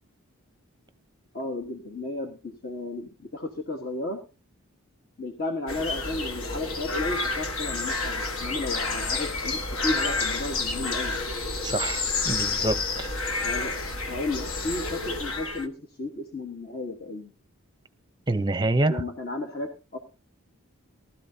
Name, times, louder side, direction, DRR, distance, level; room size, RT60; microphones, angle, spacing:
voice 1, 1.3-4.2 5.2-11.1 13.4-13.8 14.1-17.3 18.9-20.0, left 2 dB, 45° left, 3 dB, 1.4 m, -33 dB
sound 1, 5.7-15.7, left 3 dB, 70° left, 1.5 m, -29 dB
voice 2, 11.6-13.1 18.3-19.0, right 2 dB, 20° right, 11 dB, 0.7 m, -26 dB
19.0 x 13.0 x 2.8 m, 0.30 s
head